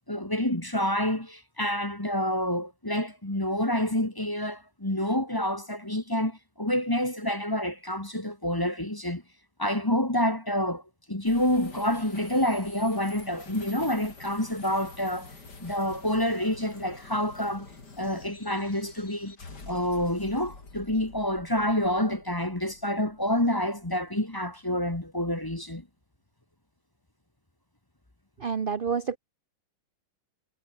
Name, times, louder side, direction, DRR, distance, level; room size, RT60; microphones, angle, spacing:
voice 1, 0.1-9.2 9.6-10.8 11.1-15.3 15.6-17.7 18.0-19.4 19.7-25.8, left 1 dB, 10° left, 1.7 m, -28 dB
sound 1, 11.3-24.6, left 3 dB, 60° left, 4.6 m, -48 dB
voice 2, 28.4-29.2, right 6 dB, 40° right, 0.9 m, -28 dB
omnidirectional pair, 2.0 m